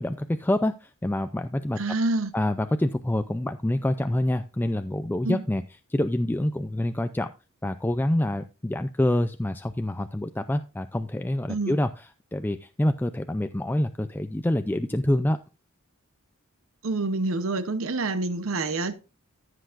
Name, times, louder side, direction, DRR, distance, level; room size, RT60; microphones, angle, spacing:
voice 1, 0.0-1.8 2.3-5.6 5.9-7.3 7.6-15.4, left 1 dB, 10° left, 0.4 m, -26 dB
voice 2, 1.8-2.3 5.2-5.4 11.5-11.8 16.8-18.9, right 2 dB, 70° right, 0.9 m, -27 dB
14.5 x 8.0 x 2.5 m
head